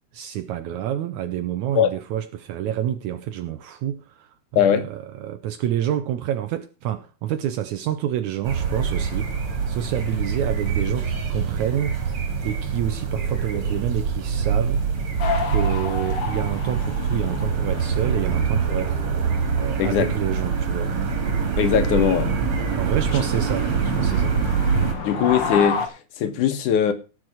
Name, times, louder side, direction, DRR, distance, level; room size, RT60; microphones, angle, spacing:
voice 1, 0.1-9.4 9.7-12.0 12.4-14.8 15.4-19.0 19.6-21.0 22.8-24.4, right 11 dB, 75° right, 2.1 m, -28 dB
voice 2, 4.6-4.9 19.8-20.1 21.6-22.3 25.0-26.9, left 9 dB, 80° left, 2.8 m, -20 dB
sound 1, 8.4-24.9, right 6 dB, 45° right, 3.1 m, -24 dB
sound 2, 15.2-25.9, left 5 dB, 40° left, 2.0 m, -32 dB
17.5 x 6.2 x 4.8 m
omnidirectional pair, 3.6 m